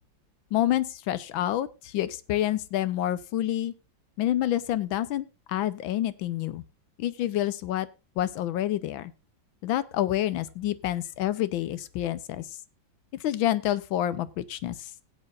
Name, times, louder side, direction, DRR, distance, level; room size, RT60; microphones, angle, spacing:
voice 1, 0.5-3.7 4.2-6.6 7.0-7.9 8.2-9.1 9.6-12.6 13.2-14.9, left 12 dB, 80° left, 16 dB, 1.5 m, -28 dB
18.0 x 8.8 x 2.4 m, 0.30 s
omnidirectional pair, 2.1 m